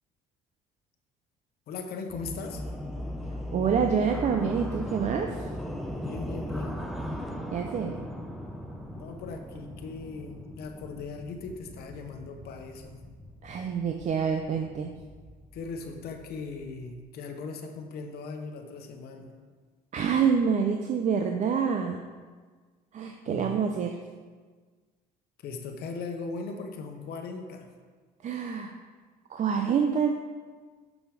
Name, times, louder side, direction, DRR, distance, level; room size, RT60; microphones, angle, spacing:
voice 1, 1.7-2.6 6.0-6.8 9.0-13.0 15.5-19.3 23.3-23.6 25.4-27.7, left 4 dB, 65° left, 4 dB, 0.9 m, -39 dB
sound 1, 2.1-17.0, left 1 dB, ahead, 0.8 m, -39 dB
voice 2, 3.5-5.4 7.5-7.9 13.4-14.9 19.9-22.0 22.9-23.9 28.2-28.7 29.3-30.1, right 6 dB, 45° right, 4 dB, 0.6 m, -27 dB
6.4 x 6.2 x 4.9 m, 1.5 s
cardioid pair, 110°, 17 cm